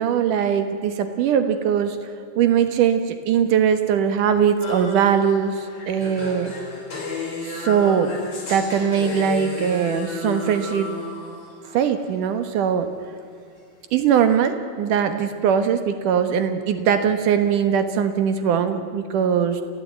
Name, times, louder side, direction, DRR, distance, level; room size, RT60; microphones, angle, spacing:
voice 1, 0.0-2.0 2.4-6.5 7.4-8.2 8.5-10.9 11.7-12.9 13.9-19.6, right 8 dB, 80° right, 9 dB, 2.9 m, -21 dB
sound 1, 4.6-11.9, left 2 dB, 45° left, 5.1 m, -32 dB
27.0 x 16.5 x 9.2 m, 2.5 s
omnidirectional pair, 3.6 m